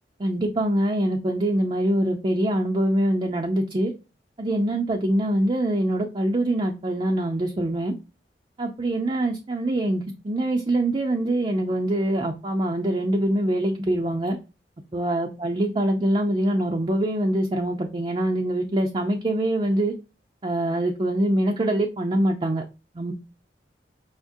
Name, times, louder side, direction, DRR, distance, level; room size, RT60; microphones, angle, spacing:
voice 1, 0.2-3.9 4.4-7.9 8.6-14.4 14.9-19.9 20.4-22.6 23.0-23.1, right 1 dB, 30° right, 2 dB, 0.5 m, -24 dB
5.4 x 3.6 x 2.6 m, 0.30 s
head